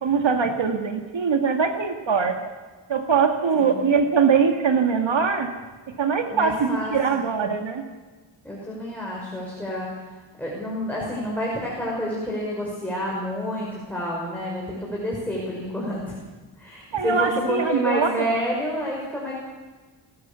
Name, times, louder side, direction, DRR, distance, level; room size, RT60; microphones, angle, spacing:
voice 1, 0.0-2.4 2.9-5.5 6.0-7.8 16.9-18.4, right 6 dB, 65° right, 5 dB, 2.3 m, -22 dB
voice 2, 6.3-7.2 8.4-9.9 10.4-16.1 16.6-19.3, equal, 5° left, -5 dB, 5.9 m, -29 dB
28.5 x 15.5 x 7.1 m, 1.4 s
wide cardioid pair, 125°, 49 cm